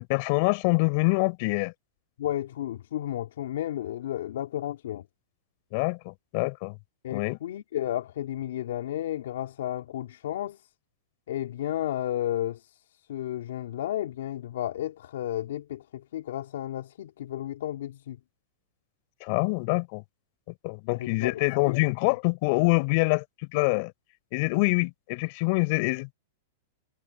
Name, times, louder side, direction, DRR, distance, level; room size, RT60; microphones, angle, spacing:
voice 1, 0.1-1.7 5.7-6.8 7.1-7.4 19.2-20.0 20.6-23.2 23.5-23.9 24.3-26.1, left 27 dB, 45° left, 4.6 m, -25 dB
voice 2, 2.2-5.1 7.0-10.6 11.3-18.2 20.9-21.8 22.0-22.2, left 12 dB, 75° left, 3.5 m, -33 dB
supercardioid pair, 155°, 0 cm